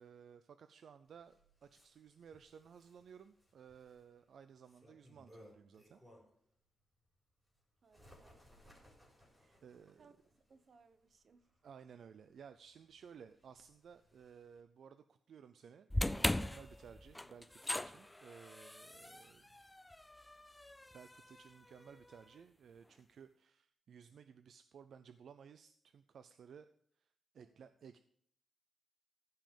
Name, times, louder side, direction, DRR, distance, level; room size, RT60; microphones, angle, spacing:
voice 1, 0.0-6.0 9.6-10.1 11.6-19.6 20.9-26.7 27.0-28.0, right 7 dB, 70° right, 10 dB, 0.5 m, -57 dB
Bird, 1.1-6.5 6.9-14.6, equal, 10° right, 4.4 m, -66 dB
voice 2, 7.8-8.5 9.4-9.6 10.0-11.5 27.4-27.7, right 5 dB, 50° right, 11 dB, 0.9 m, -67 dB
sound 1, 15.9-22.2, left 1 dB, 10° left, 0.3 m, -40 dB
15.0 x 5.7 x 5.3 m, 0.65 s
wide cardioid pair, 125°, 0 cm